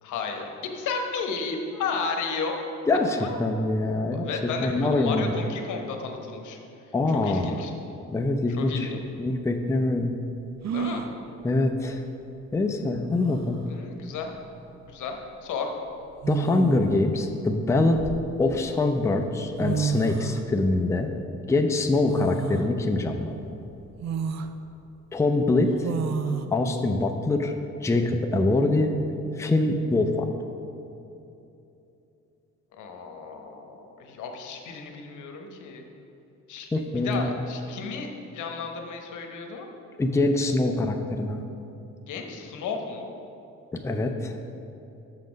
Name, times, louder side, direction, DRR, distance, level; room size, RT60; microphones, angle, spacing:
voice 1, 0.0-2.6 3.2-3.7 4.1-6.6 7.1-7.7 8.6-9.0 10.7-11.0 13.7-14.3 14.9-15.2 15.4-15.7 32.8-35.8 36.5-36.7 37.0-39.7 42.1-43.1, left 5 dB, 80° left, 3 dB, 1.0 m, -33 dB
voice 2, 2.9-4.3 4.6-5.3 6.9-7.6 8.1-8.9 9.2-10.1 11.4-12.0 12.5-13.6 16.3-18.0 18.4-21.1 21.5-23.4 25.1-25.9 26.5-27.5 27.8-28.9 29.4-30.3 36.7-37.3 40.0-41.4 43.7-44.4, left 2 dB, 10° left, 4 dB, 0.5 m, -24 dB
sound 1, 9.0-9.1 10.6-11.1 12.6-12.7 13.1-13.6 14.9-15.1 16.2-17.0 17.6-18.7 19.3-19.4 19.6-20.5 22.1-22.7 23.2-23.3 24.0-24.5 25.8-26.5, right 6 dB, 60° right, 0.5 m, -30 dB
6.5 x 5.8 x 5.1 m, 2.9 s
cardioid pair, 90°, 30 cm